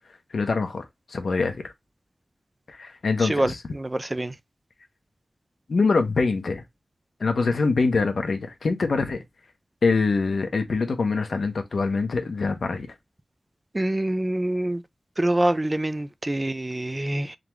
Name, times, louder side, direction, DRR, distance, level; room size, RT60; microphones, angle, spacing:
voice 1, 0.3-1.7 2.7-3.6 5.7-6.6 7.2-9.2 9.8-12.9, left 4 dB, 85° left, 0.9 m, -24 dB
voice 2, 3.8-4.3 13.7-14.8 15.2-17.4, right 1 dB, 25° right, 0.4 m, -25 dB
3.8 x 3.4 x 3.1 m
wide cardioid pair, 80°, 0 cm